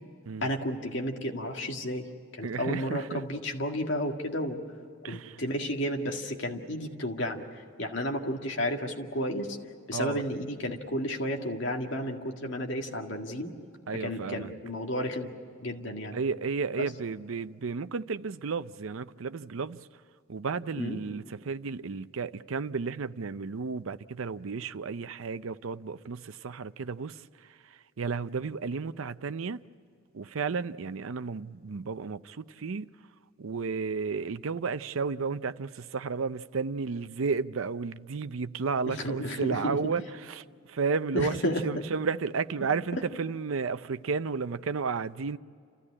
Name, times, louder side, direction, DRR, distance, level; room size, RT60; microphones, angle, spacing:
voice 1, 0.4-2.1 2.3-4.6 5.1-9.6 9.9-13.5 14.0-15.3 15.6-16.2 16.8-16.9 20.8-21.0 38.9-39.8 41.1-41.8, equal, 60° left, 2.0 m, -32 dB
voice 2, 2.4-3.2 5.0-5.4 9.9-10.2 13.9-14.5 16.1-19.9 20.3-29.6 30.1-32.9 33.4-45.4, right 5 dB, 80° right, 0.6 m, -33 dB
29.5 x 14.0 x 9.8 m
head